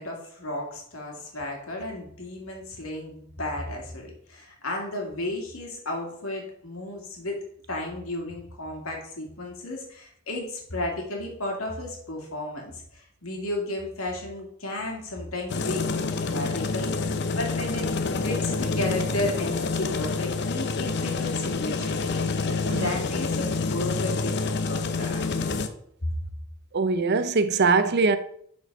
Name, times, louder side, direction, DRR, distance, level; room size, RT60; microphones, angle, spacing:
voice 1, 0.0-25.2 26.0-26.1, left 1 dB, 90° left, 2.4 m, -33 dB
sound 1, 15.5-25.7, left 4 dB, 55° left, 0.7 m, -27 dB
voice 2, 26.7-28.2, right 4 dB, 50° right, 0.6 m, -22 dB
7.1 x 4.5 x 5.4 m
head